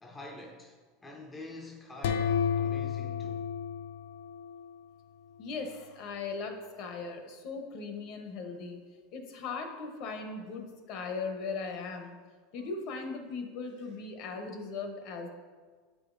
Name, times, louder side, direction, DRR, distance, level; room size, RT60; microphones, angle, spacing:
voice 1, 0.0-3.5, left 1 dB, 15° left, 0.5 m, -46 dB
sound 1, 2.0-4.8, left 7 dB, 75° left, 0.4 m, -31 dB
voice 2, 5.4-8.8 9.1-12.2 12.5-15.3, left 4 dB, 50° left, 0.8 m, -38 dB
7.9 x 5.0 x 2.6 m
supercardioid pair, 150°, 0 cm